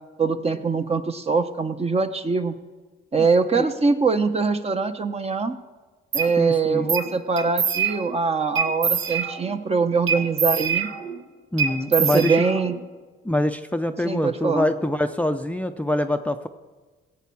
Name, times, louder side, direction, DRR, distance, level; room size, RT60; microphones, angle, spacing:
voice 1, 0.2-2.5 3.1-5.5 6.1-10.9 11.9-12.7 14.0-14.7, right 4 dB, 30° right, 8 dB, 1.0 m, -23 dB
sound 1, 6.1-6.3 6.9-7.1 7.4-8.2 8.6-9.6 10.1-11.2 11.6-12.8, right 6 dB, 70° right, 1.6 m, -25 dB
voice 2, 6.4-6.9 11.5-12.4 13.2-16.5, left 1 dB, 5° left, 8 dB, 0.6 m, -25 dB
16.5 x 8.5 x 7.0 m, 1.4 s
cardioid pair, 90°, 20 cm